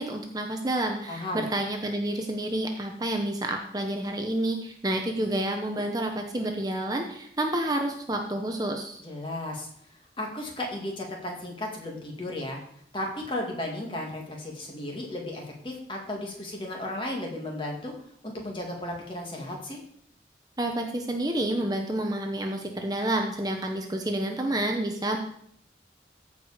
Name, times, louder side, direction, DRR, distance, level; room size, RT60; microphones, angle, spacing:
voice 1, 0.0-9.0 20.6-25.2, right 1 dB, 20° right, 3 dB, 0.8 m, -29 dB
voice 2, 1.1-1.4 9.0-9.7 10.2-12.6 12.9-17.9 18.2-19.8, left 1 dB, 30° left, 0 dB, 2.1 m, -34 dB
14.5 x 5.0 x 5.0 m, 0.66 s
head